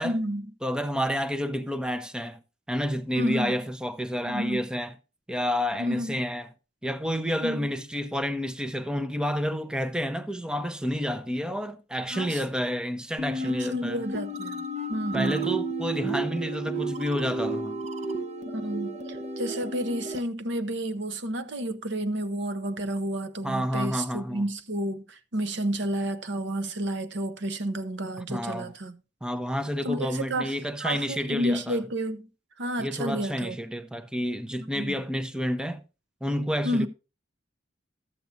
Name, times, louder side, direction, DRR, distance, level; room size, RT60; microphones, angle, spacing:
voice 1, 0.0-0.5 3.1-3.6 4.3-4.6 5.8-6.2 7.4-7.7 12.1-12.4 13.4-15.5 18.5-29.0 29.8-30.5 30.8-32.3 32.6-33.6 34.7-34.9 36.6-36.9, right 1 dB, 65° right, 0.8 m, -31 dB
voice 2, 0.6-2.4 2.7-4.9 5.3-6.5 6.8-14.0 15.1-17.8 23.4-24.4 28.3-28.7 29.2-31.8 32.8-35.8 36.2-36.9, equal, 5° right, 0.6 m, -29 dB
sound 1, 13.2-20.2, right 2 dB, 35° right, 0.8 m, -32 dB
13.0 x 8.2 x 2.6 m
head